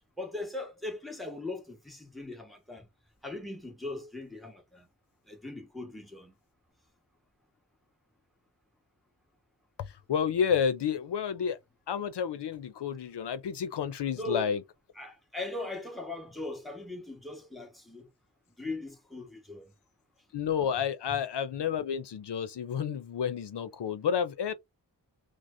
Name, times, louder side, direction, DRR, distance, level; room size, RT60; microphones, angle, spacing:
voice 1, 0.2-2.9 3.2-4.9 5.3-6.3 14.1-14.5 14.9-18.1 18.6-19.7, left 2 dB, ahead, 1.3 m, -39 dB
voice 2, 9.8-11.6 11.9-14.6 20.3-24.5, left 7 dB, 75° left, 0.6 m, -30 dB
6.1 x 2.1 x 2.5 m
wide cardioid pair, 80°, 42 cm